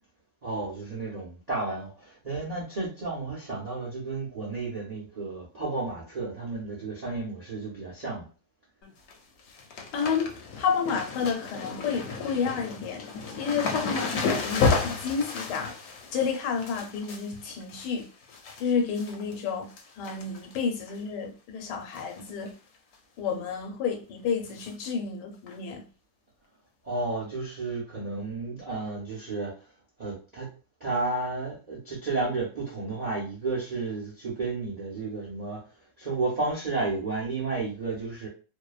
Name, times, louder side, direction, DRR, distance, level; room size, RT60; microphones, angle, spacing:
voice 1, 0.4-8.2 26.8-29.5 30.0-30.5 30.8-35.6 36.0-38.3, right 3 dB, 55° right, 0.4 m, -32 dB
sound 1, 8.8-9.1 9.4-18.6 19.0-19.4 19.7-20.5 20.9-21.0 21.9-22.2 22.5-22.6 22.9-23.0 24.6-24.7 25.5-25.6, left 4 dB, 70° left, 1.0 m, -32 dB
voice 2, 9.9-13.1 13.4-15.7 16.1-18.1 18.6-22.6 23.2-25.8, left 6 dB, 90° left, 1.3 m, -30 dB
2.7 x 2.1 x 2.3 m
omnidirectional pair, 1.8 m